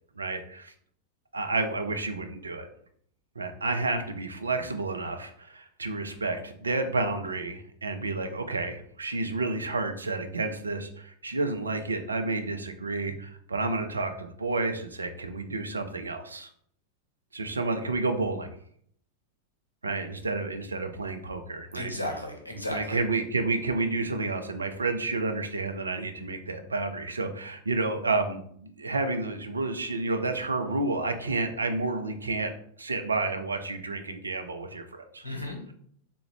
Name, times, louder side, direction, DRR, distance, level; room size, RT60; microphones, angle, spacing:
voice 1, 0.2-0.7 1.3-2.7 3.4-16.5 17.3-18.5 19.8-21.9 22.7-32.5 32.8-35.3, right 3 dB, 75° right, 7 dB, 0.4 m, -30 dB
voice 2, 21.7-23.0 35.2-35.7, left 1 dB, 90° left, 2 dB, 0.7 m, -34 dB
3.4 x 2.2 x 3.2 m, 0.65 s
figure-of-eight pair, 90°, 0 cm